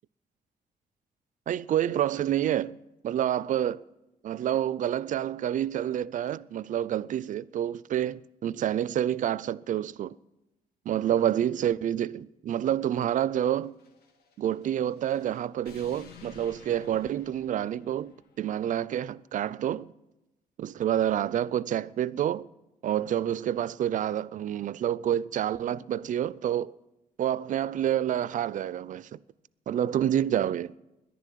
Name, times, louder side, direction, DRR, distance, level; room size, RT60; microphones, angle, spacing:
voice 1, 1.5-2.8 3.0-3.8 4.2-10.2 10.9-13.7 14.4-19.9 20.6-22.5 22.8-26.7 27.2-29.2 29.7-30.7, right 10 dB, 55° right, 0.4 m, -28 dB
sound 1, 13.7-18.4, left 6 dB, 85° left, 1.6 m, -53 dB
11.0 x 10.5 x 9.2 m
cardioid pair, 110°, 16 cm